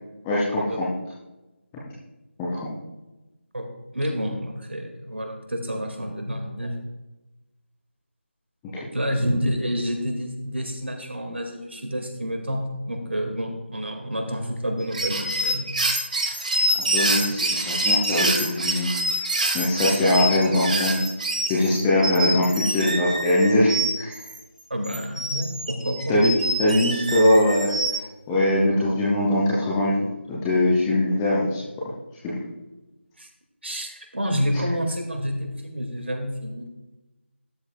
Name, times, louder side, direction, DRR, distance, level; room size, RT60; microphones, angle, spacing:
voice 1, 0.2-0.9 2.4-2.7 16.7-19.2 19.5-21.0 21.5-24.2 26.1-26.3 26.6-28.0 28.3-31.6 32.2-32.4, left 1 dB, 5° left, -8 dB, 0.4 m, -22 dB
voice 2, 3.9-6.8 8.9-15.7 24.7-26.2 33.2-33.3 33.6-36.7, equal, 65° right, 4 dB, 1.9 m, -29 dB
sound 1, 14.8-24.4 24.8-28.0, right 1 dB, 40° right, 1.2 m, -26 dB
12.5 x 10.0 x 2.2 m, 1.0 s
figure-of-eight pair, 165°, 7 cm